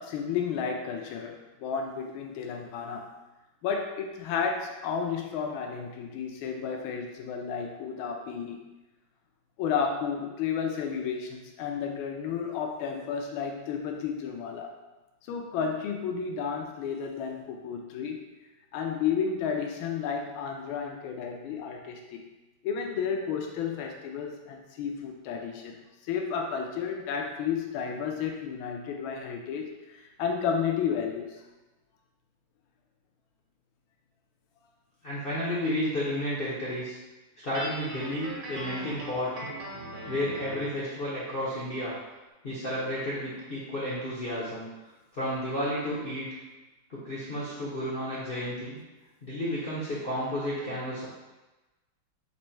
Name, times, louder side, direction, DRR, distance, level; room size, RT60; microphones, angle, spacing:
voice 1, 0.0-3.1 3.6-8.6 9.6-14.7 15.3-18.2 18.7-22.2 22.6-25.8 26.0-31.4, left 6 dB, 80° left, 2 dB, 1.4 m, -32 dB
voice 2, 35.0-37.0 37.4-39.3 40.1-41.9 42.4-44.7 45.1-46.3 46.9-48.8 49.2-51.0, left 1 dB, 60° left, -8 dB, 0.6 m, -32 dB
Guitar, 37.5-40.8, right 1 dB, 65° right, 1.5 m, -39 dB
4.2 x 2.6 x 4.4 m, 1.1 s
omnidirectional pair, 2.3 m